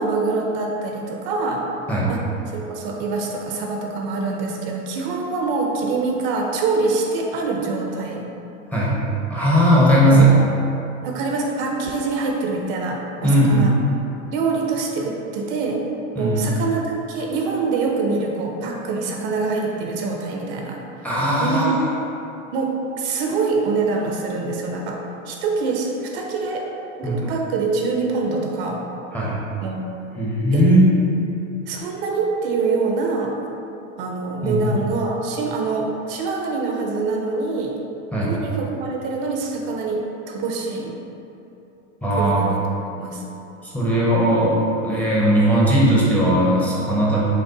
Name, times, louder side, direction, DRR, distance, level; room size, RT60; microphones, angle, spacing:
voice 1, 0.0-1.6 2.1-2.2 2.5-8.2 10.0-10.5 11.0-13.7 14.3-15.8 16.2-20.8 21.4-21.7 22.5-26.7 27.0-28.8 29.6-29.8 30.5-30.7 31.7-33.3 34.0-37.8 38.2-40.9 42.2-42.6 43.0-43.2, right 4 dB, 45° right, 0 dB, 0.5 m, -25 dB
voice 2, 8.7-10.3 13.2-13.8 16.1-16.5 21.0-21.9 27.0-27.3 29.1-29.4 30.1-30.9 34.4-34.7 38.1-38.3 42.0-42.5 43.6-47.2, right 1 dB, 5° left, -7 dB, 0.5 m, -18 dB
5.3 x 2.0 x 3.8 m, 2.8 s
supercardioid pair, 125°, 38 cm